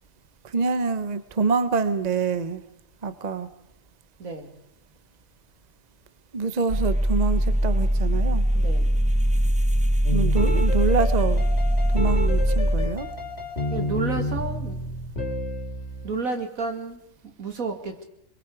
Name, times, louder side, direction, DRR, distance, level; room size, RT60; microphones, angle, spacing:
voice 1, 0.4-2.6 3.0-3.5 6.3-8.4 10.1-11.4 11.9-13.1, right 4 dB, 35° right, 12 dB, 1.0 m, -26 dB
voice 2, 4.2-4.5 8.5-8.9 13.7-14.8 16.0-18.0, right 4 dB, 80° right, 5 dB, 2.8 m, -31 dB
sound 1, 6.7-12.9, equal, 5° right, 0.7 m, -21 dB
sound 2, 10.0-16.1, left 1 dB, 50° left, 3.1 m, -30 dB
28.0 x 22.0 x 4.9 m, 0.79 s
omnidirectional pair, 1.4 m